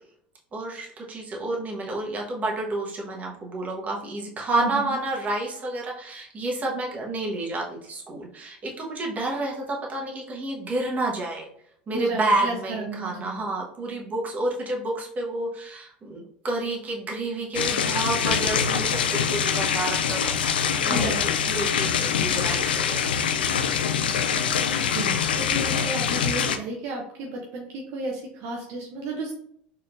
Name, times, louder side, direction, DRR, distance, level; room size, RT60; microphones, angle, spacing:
voice 1, 0.5-11.5 11.9-20.5 20.8-23.1, right 2 dB, 30° right, -1 dB, 1.3 m, -30 dB
voice 2, 4.5-5.0 11.9-13.4 20.9-21.2 24.8-29.3, right 2 dB, 60° right, 0 dB, 0.7 m, -33 dB
sound 1, 17.5-26.6, left 7 dB, 90° left, 0.3 m, -24 dB
4.1 x 3.4 x 2.6 m, 0.67 s
hypercardioid pair, 85°, 5 cm